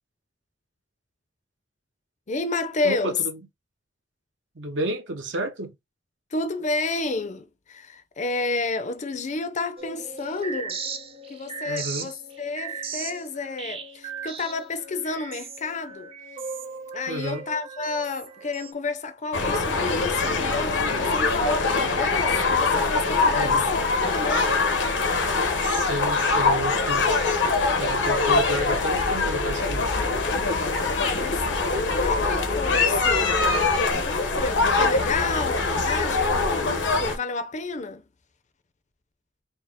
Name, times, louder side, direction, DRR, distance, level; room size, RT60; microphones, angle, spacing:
voice 1, 2.3-3.2 6.3-10.8 11.3-16.1 16.9-23.6 23.9-24.5 30.8-31.4 31.9-33.3 33.6-38.0, left 3 dB, 40° left, 0.6 m, -31 dB
voice 2, 2.8-3.3 4.6-5.7 11.7-12.1 17.1-17.4 23.3-23.7 25.6-27.2 27.8-30.0, right 1 dB, 75° right, 1.0 m, -31 dB
sound 1, 9.8-18.7, right 5 dB, 30° right, 0.6 m, -37 dB
sound 2, 19.3-37.2, left 3 dB, 70° left, 0.9 m, -23 dB
4.3 x 2.1 x 3.5 m
head